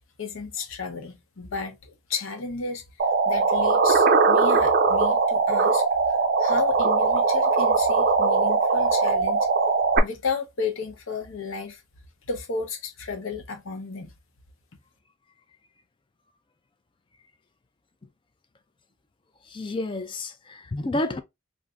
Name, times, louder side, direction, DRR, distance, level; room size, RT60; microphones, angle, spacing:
voice 1, 0.2-2.8 3.2-5.8 6.4-9.5 10.0-11.8 12.3-14.1, left 4 dB, 75° left, 0.8 m, -33 dB
sound 1, 3.0-10.0, right 4 dB, 45° right, 0.4 m, -20 dB
voice 2, 19.5-21.2, left 2 dB, 25° left, 0.4 m, -30 dB
2.6 x 2.5 x 3.4 m
head